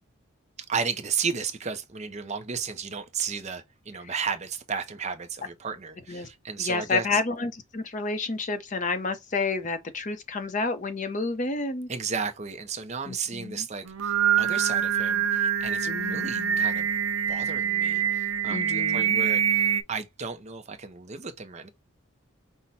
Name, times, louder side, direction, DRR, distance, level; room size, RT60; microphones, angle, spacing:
voice 1, 0.7-7.2 11.9-16.9 17.3-21.7, right 5 dB, 30° right, 0.5 m, -33 dB
voice 2, 6.6-11.9 13.1-13.6 15.9-16.6 18.5-19.2, left 3 dB, 35° left, 0.6 m, -30 dB
Singing, 13.9-19.8, right 8 dB, 80° right, 0.5 m, -25 dB
5.5 x 2.1 x 4.0 m
head